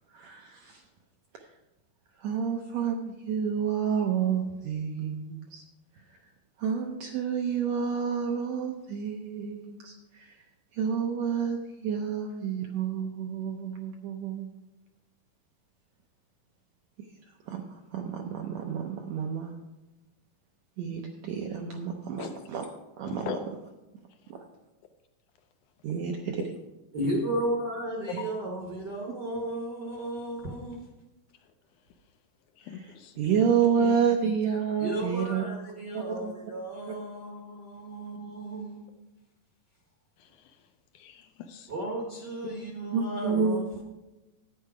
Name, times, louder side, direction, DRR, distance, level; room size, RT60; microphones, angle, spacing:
voice 1, 0.1-0.8 2.2-5.6 5.9-6.2 6.6-10.4 10.7-14.5 17.0-17.1 17.5-19.6 20.8-22.6 23.0-23.3 24.3-24.4 25.8-26.4 32.7-32.9 33.2-35.4 35.9-36.3 36.9-37.0 42.9-43.8, right 7 dB, 75° right, 2 dB, 1.6 m, -29 dB
voice 2, 22.2-22.5 23.1-23.4 24.2-24.3 28.2-28.3 31.4-31.5 32.6-33.2 33.8-34.0 40.2-40.7 40.9-41.7, left 7 dB, 75° left, 7 dB, 1.9 m, -40 dB
voice 3, 26.9-30.8 34.8-38.8 41.7-43.8, right 1 dB, 55° right, -1 dB, 1.2 m, -34 dB
10.0 x 9.1 x 4.9 m, 1.0 s
omnidirectional pair, 4.0 m